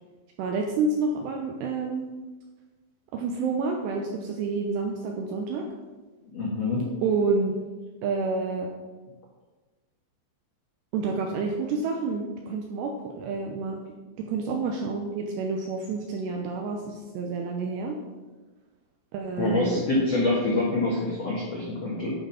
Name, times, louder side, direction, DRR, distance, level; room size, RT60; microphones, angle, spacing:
voice 1, 0.4-2.1 3.1-5.7 7.0-7.6 8.0-8.7 10.9-13.8 14.2-18.0 19.1-19.8, right 4 dB, 85° right, 1 dB, 2.5 m, -29 dB
voice 2, 6.3-6.9 19.4-22.1, left 2 dB, 70° left, -5 dB, 1.5 m, -26 dB
11.5 x 4.5 x 5.7 m, 1.2 s
omnidirectional pair, 5.7 m